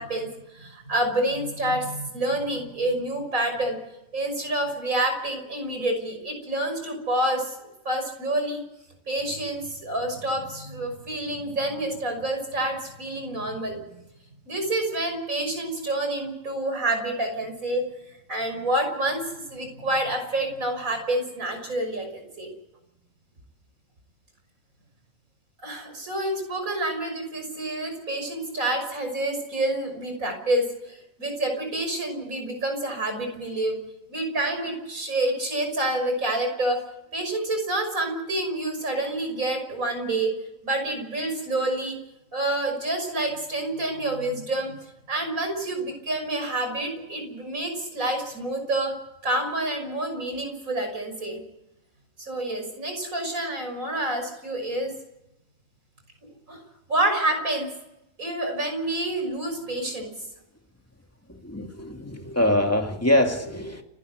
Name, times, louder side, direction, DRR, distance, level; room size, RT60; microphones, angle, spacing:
voice 1, 0.0-3.8 4.1-7.6 7.8-8.6 9.1-13.8 14.5-17.8 18.3-22.5 25.6-33.8 34.1-36.8 37.1-40.3 40.6-42.0 42.3-44.7 45.1-49.0 49.2-51.4 52.2-54.9 56.5-56.6 56.9-57.7 58.2-60.1, right 1 dB, 85° right, 5 dB, 6.4 m, -28 dB
voice 2, 61.3-63.8, left 1 dB, 10° left, 3 dB, 2.4 m, -24 dB
30.0 x 12.0 x 8.1 m, 0.88 s
omnidirectional pair, 1.4 m